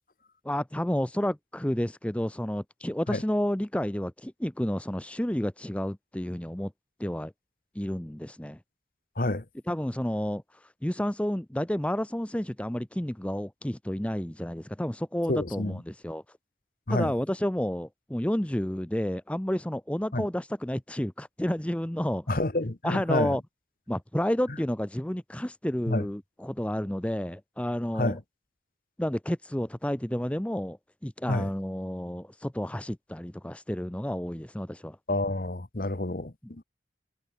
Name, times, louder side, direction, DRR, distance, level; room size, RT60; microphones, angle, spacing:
voice 1, 0.4-6.7 7.0-7.3 7.7-8.6 9.7-16.2 16.9-22.3 22.8-23.4 23.9-28.2 29.0-35.0, equal, 5° left, 0.6 m, -30 dB
voice 2, 15.3-15.8 16.9-17.1 20.1-20.3 22.3-23.4 25.9-26.0 28.0-28.2 31.3-31.5 35.1-36.6, left 2 dB, 50° left, 1.2 m, -28 dB
head